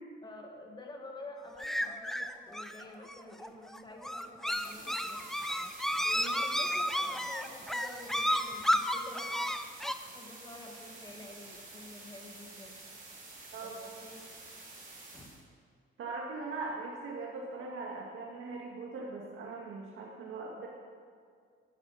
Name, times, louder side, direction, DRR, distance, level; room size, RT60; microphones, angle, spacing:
voice 1, 0.2-5.2 6.1-9.4 10.0-12.7 13.6-14.2 15.1-15.4, left 2 dB, 20° left, 2 dB, 1.7 m, -49 dB
sound 1, 1.6-9.9, equal, ahead, 0.5 m, -32 dB
sound 2, 4.5-15.4, right 2 dB, 40° right, 3.9 m, -50 dB
voice 2, 16.0-20.7, right 3 dB, 80° right, -3 dB, 2.0 m, -40 dB
13.0 x 10.5 x 6.5 m, 2.1 s
cardioid pair, 135°, 21 cm